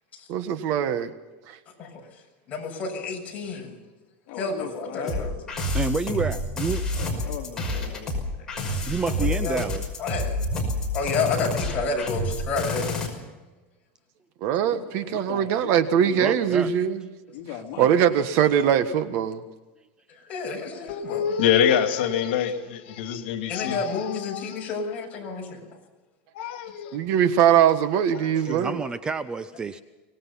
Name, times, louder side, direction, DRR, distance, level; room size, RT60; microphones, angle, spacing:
voice 1, 0.3-1.1 1.5-1.6 14.4-17.0 17.8-19.4 26.9-28.8, right 9 dB, 50° right, 1.4 m, -21 dB
voice 2, 2.5-3.8 4.4-5.3 7.7-7.9 8.5-8.8 9.2-9.7 10.0-10.4 10.9-13.1 20.3-21.2 23.5-25.6, left 4 dB, 25° left, 6.9 m, -30 dB
voice 3, 4.3-5.3 6.0-6.3 6.9-8.1 14.7-16.5 17.3-18.0, left 9 dB, 50° left, 2.9 m, -39 dB
sound 1, 5.1-13.1, left 2 dB, 10° left, 5.7 m, -28 dB
voice 4, 5.7-6.9 8.9-9.9 16.2-16.7 28.4-29.8, right 5 dB, 15° right, 0.6 m, -29 dB
voice 5, 20.9-24.8 26.3-27.0 28.2-28.3, left 8 dB, 75° left, 2.5 m, -25 dB
24.5 x 19.0 x 5.8 m
supercardioid pair, 160°, 6 cm